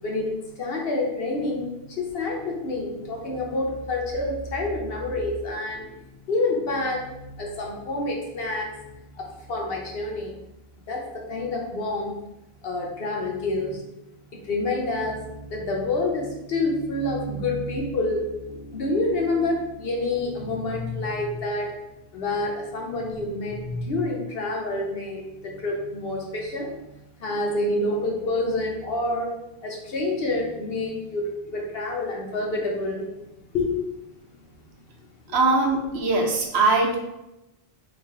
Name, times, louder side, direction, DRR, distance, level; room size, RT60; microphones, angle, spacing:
voice 1, 0.0-8.7 9.1-10.4 10.9-12.1 12.6-13.8 14.3-21.7 22.1-26.7 27.2-29.3 29.6-33.1 33.5-33.8 34.2-34.3, left 2 dB, 70° left, -1 dB, 1.0 m, -28 dB
voice 2, 35.3-37.0, right 3 dB, 90° right, 1 dB, 1.0 m, -21 dB
3.2 x 2.5 x 3.6 m, 0.93 s
omnidirectional pair, 1.1 m